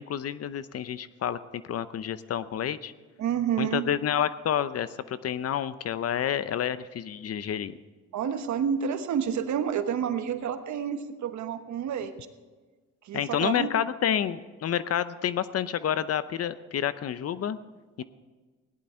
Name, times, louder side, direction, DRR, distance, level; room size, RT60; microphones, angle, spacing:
voice 1, 0.0-2.9 3.6-7.8 13.1-17.6 18.0-18.1, left 9 dB, 55° left, 15 dB, 0.7 m, -29 dB
voice 2, 3.2-3.9 8.1-12.1 13.0-13.7, right 8 dB, 70° right, 9 dB, 1.2 m, -29 dB
17.0 x 11.0 x 4.4 m, 1.4 s
cardioid pair, 90°, 30 cm